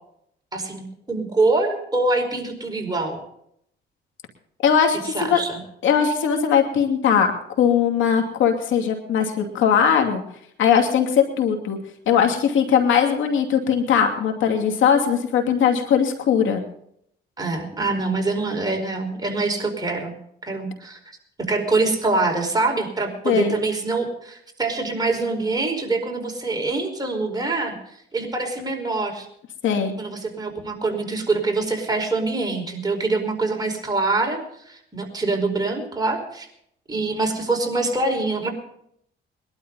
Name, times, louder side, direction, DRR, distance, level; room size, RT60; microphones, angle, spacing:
voice 1, 0.5-3.2 5.0-5.6 17.4-20.1 20.5-21.0 21.4-27.8 28.1-29.3 30.0-34.4 34.6-36.5 36.9-38.5, right 3 dB, 20° right, 1 dB, 5.0 m, -24 dB
voice 2, 4.6-5.4 5.8-7.3 7.6-10.2 10.6-11.8 12.1-16.6 23.2-23.5 29.6-29.9, left 7 dB, 80° left, 4 dB, 2.7 m, -19 dB
22.0 x 12.5 x 4.1 m, 0.70 s
cardioid pair, 90°, 20 cm